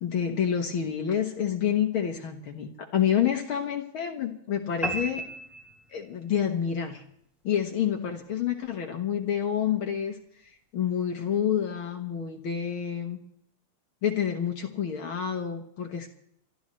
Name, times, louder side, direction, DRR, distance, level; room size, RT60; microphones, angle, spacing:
voice 1, 0.0-5.3 5.9-7.0 7.4-10.2 10.7-13.2 14.0-16.1, left 9 dB, 60° left, 4 dB, 1.6 m, -28 dB
sound 1, 4.8-6.4, right 1 dB, ahead, 1.7 m, -34 dB
27.5 x 12.5 x 3.2 m, 0.72 s
omnidirectional pair, 3.3 m